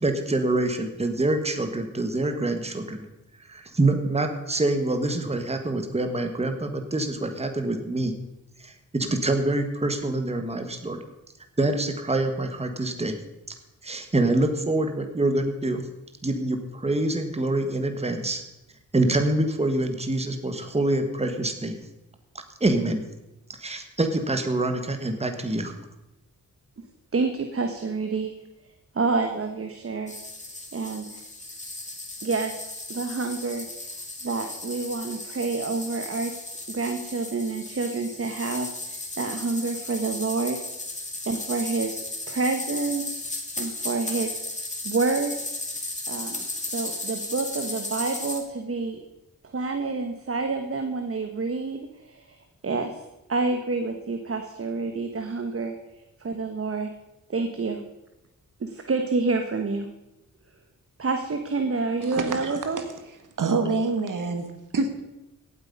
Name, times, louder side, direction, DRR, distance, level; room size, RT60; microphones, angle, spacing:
voice 1, 0.0-3.0 3.5-8.1 8.6-11.0 11.6-13.1 13.8-15.8 16.2-18.4 18.9-21.8 22.6-23.0 23.6-25.7, right 2 dB, 20° right, 6 dB, 1.5 m, -25 dB
voice 2, 27.1-28.3 28.9-30.1 30.7-31.2 32.2-32.6 32.9-36.3 36.7-40.6 41.3-43.0 43.6-45.4 46.1-46.4 46.7-49.0 49.4-53.0 53.3-55.7 56.2-56.9 57.3-57.8 58.6-59.9 61.0-62.8, right 3 dB, 40° right, 6 dB, 1.2 m, -28 dB
sound 1, 30.1-48.4, left 2 dB, 20° left, 2.6 m, -35 dB
voice 3, 62.0-62.5 63.4-64.5 64.7-65.0, right 4 dB, 65° right, 6 dB, 1.8 m, -26 dB
17.0 x 8.3 x 5.3 m, 0.95 s
wide cardioid pair, 90°, 33 cm